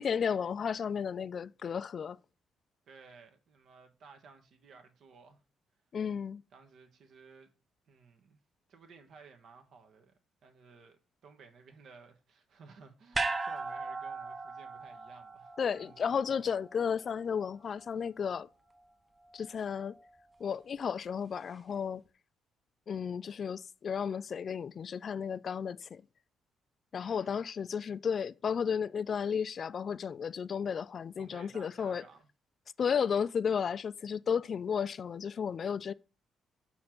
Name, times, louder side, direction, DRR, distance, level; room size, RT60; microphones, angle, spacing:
voice 1, 0.0-2.2 5.9-6.4 15.6-18.5 19.3-20.0 20.4-22.0 22.9-26.0 26.9-32.0 32.8-35.9, left 7 dB, 50° left, 0.3 m, -33 dB
voice 2, 2.9-5.4 6.5-7.5 7.9-8.4 8.7-10.1 10.4-16.4 27.0-27.3 31.2-32.3, right 5 dB, 70° right, 1.3 m, -56 dB
sound 1, 13.1-17.5 17.8-17.9, right 3 dB, 20° right, 0.7 m, -38 dB
6.3 x 4.4 x 5.9 m
cardioid pair, 90°, 0 cm